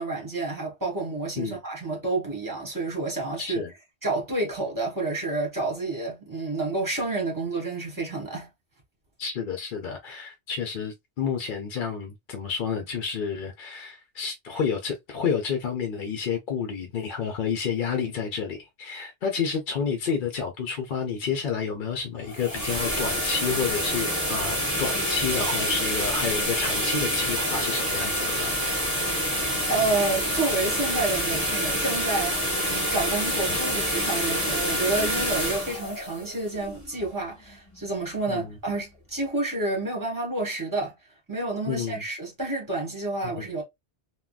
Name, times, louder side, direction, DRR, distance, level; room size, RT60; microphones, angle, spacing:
voice 1, 0.0-3.6 4.0-8.5 29.7-32.4 32.7-40.9 41.3-43.6, right 2 dB, 20° right, 1.3 m, -29 dB
voice 2, 3.4-3.7 9.2-28.5 33.5-33.6 38.3-38.6 41.7-42.0 43.2-43.3, left 6 dB, 60° left, 0.7 m, -30 dB
sound 1, 22.2-37.1, equal, 15° left, 1.7 m, -27 dB
3.6 x 2.2 x 2.3 m
omnidirectional pair, 1.1 m